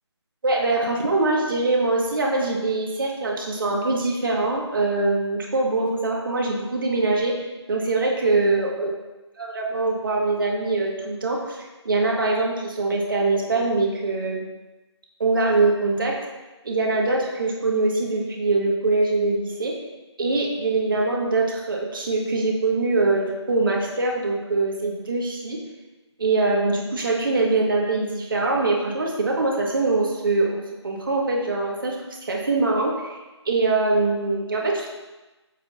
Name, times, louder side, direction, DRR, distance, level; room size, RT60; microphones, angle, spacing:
voice 1, 0.4-8.9 9.4-14.4 15.2-16.2 16.6-19.7 20.2-25.6 26.2-33.2 33.5-34.9, right 3 dB, 45° right, -2 dB, 2.1 m, -23 dB
9.6 x 7.6 x 2.9 m, 1.1 s
figure-of-eight pair, 155°, 15 cm